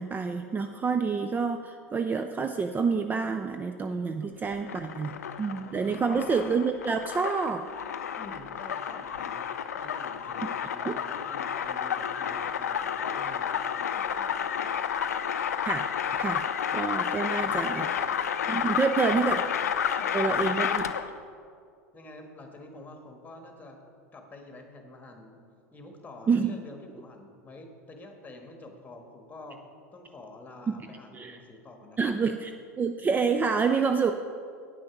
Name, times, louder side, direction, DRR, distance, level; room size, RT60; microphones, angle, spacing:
voice 1, 0.0-7.6 10.8-11.0 15.6-16.4 16.7-17.9 18.5-19.4 20.1-20.8 26.3-26.6 30.8-30.9 31.1-31.4 32.0-32.5 32.8-34.1, right 5 dB, 20° right, 7 dB, 0.4 m, -28 dB
sound 1, 4.5-21.2, left 8 dB, 80° left, 0.4 m, -31 dB
voice 2, 4.7-5.1 5.5-6.3 8.2-9.5 9.7-14.8 17.4-18.2 19.2-19.5 19.9-21.1 21.9-23.8 24.1-25.4 25.7-29.6 29.9-32.1, left 2 dB, 20° left, 4 dB, 1.5 m, -47 dB
9.1 x 6.2 x 6.0 m, 2.3 s
hypercardioid pair, 85°, 8 cm